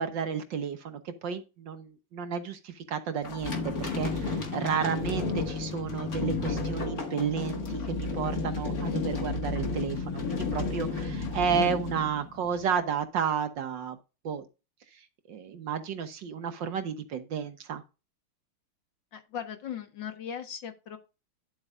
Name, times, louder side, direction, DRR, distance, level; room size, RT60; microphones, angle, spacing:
voice 1, 0.0-14.0 14.2-14.4 15.3-17.8, right 7 dB, 65° right, 9 dB, 1.7 m, -32 dB
Sounds For Earthquakes - Wood and Deep Plastic, 3.2-12.7, left 3 dB, 45° left, 2.2 m, -32 dB
voice 2, 19.1-21.0, left 8 dB, 65° left, 6 dB, 2.0 m, -38 dB
11.0 x 8.1 x 2.5 m, 0.28 s
omnidirectional pair, 2.3 m